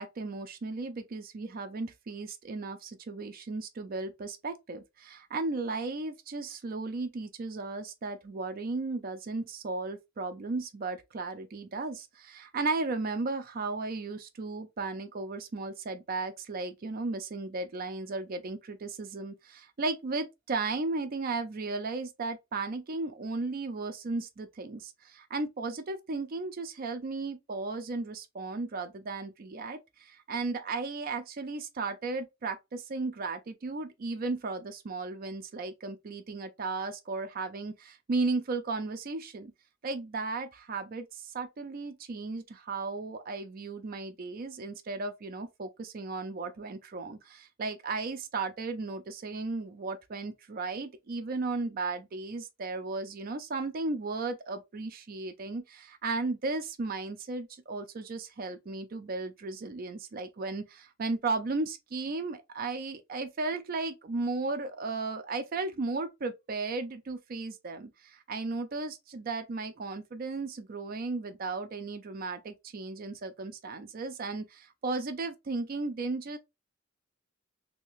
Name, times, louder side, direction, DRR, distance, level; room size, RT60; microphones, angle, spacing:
voice 1, 0.0-39.5 39.8-76.4, right 3 dB, 45° right, 0.4 m, -35 dB
3.2 x 2.8 x 3.0 m
head